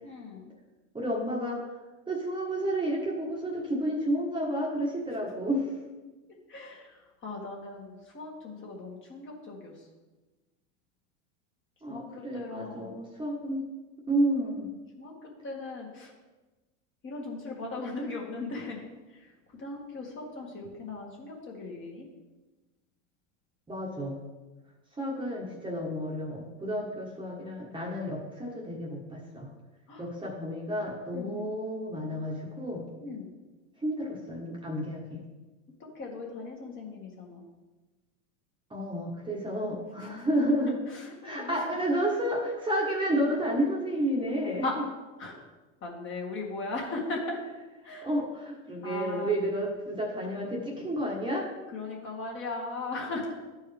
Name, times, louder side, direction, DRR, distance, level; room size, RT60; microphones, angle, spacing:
voice 1, 0.0-0.5 6.5-9.7 11.9-12.9 15.0-15.1 15.4-16.1 17.0-18.8 19.1-19.3 19.6-22.1 29.9-30.1 31.1-31.5 33.0-33.3 35.8-37.4 40.9-41.5 44.6-44.7 45.2-45.3 45.8-47.4 47.8-48.1 48.8-49.3 51.7-53.3, left 3 dB, 30° left, -1 dB, 1.8 m, -38 dB
voice 2, 0.9-1.6 2.1-5.7 11.8-13.7 14.1-14.7 23.7-24.2 25.0-29.5 30.0-32.8 33.8-35.2 38.7-40.8 41.2-44.7 48.0-51.5, right 1 dB, 10° right, -3 dB, 1.4 m, -31 dB
12.0 x 4.6 x 3.4 m, 1.2 s
supercardioid pair, 115°, 38 cm